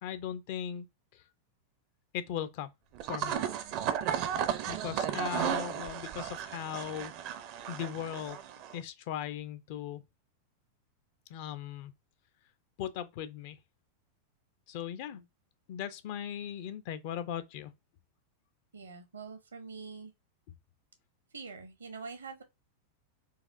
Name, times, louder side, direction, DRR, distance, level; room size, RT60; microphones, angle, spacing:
voice 1, 0.0-0.9 2.1-2.7 3.1-3.4 4.7-7.1 7.7-8.4 8.7-10.0 11.3-11.9 12.8-13.6 14.7-15.2 15.7-17.7, left 9 dB, 50° left, 0.4 m, -38 dB
sound 1, 2.9-8.8, right 9 dB, 45° right, 0.5 m, -34 dB
voice 2, 18.7-20.1 21.3-22.4, right 4 dB, 70° right, 0.8 m, -45 dB
4.0 x 2.4 x 2.5 m
figure-of-eight pair, 90°, 0 cm